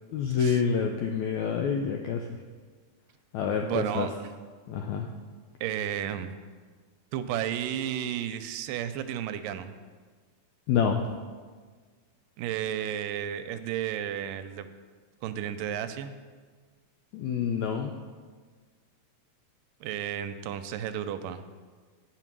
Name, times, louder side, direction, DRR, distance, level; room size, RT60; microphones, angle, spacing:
voice 1, 0.1-2.3 3.3-4.1 4.7-5.1 10.7-11.0 17.1-17.9, left 7 dB, 85° left, 3 dB, 1.7 m, -27 dB
voice 2, 3.6-4.1 5.6-6.3 7.1-9.7 12.4-14.7 15.2-16.1 19.8-21.4, right 10 dB, 85° right, 10 dB, 2.1 m, -32 dB
9.9 x 5.5 x 6.0 m, 1.5 s
omnidirectional pair, 3.9 m